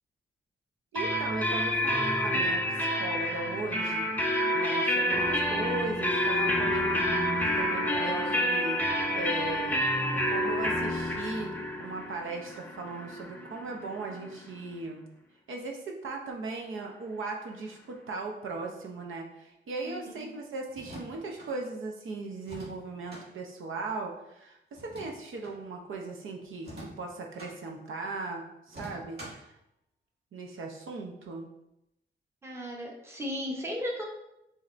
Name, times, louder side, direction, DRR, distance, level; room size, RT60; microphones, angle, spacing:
sound 1, 0.9-14.5, left 1 dB, 10° left, 0.5 m, -29 dB
voice 1, 0.9-7.1 7.5-9.8 10.1-15.0 15.5-29.5 30.3-31.5, right 3 dB, 85° right, 1 dB, 0.7 m, -38 dB
voice 2, 19.8-20.3 32.4-34.0, equal, 15° right, -1 dB, 0.9 m, -36 dB
sound 2, 20.7-21.5 22.4-23.3 24.7-25.6 26.6-27.5 28.7-29.5, right 1 dB, 55° right, 1.7 m, -45 dB
7.4 x 2.8 x 2.5 m, 0.85 s
wide cardioid pair, 135°, 20 cm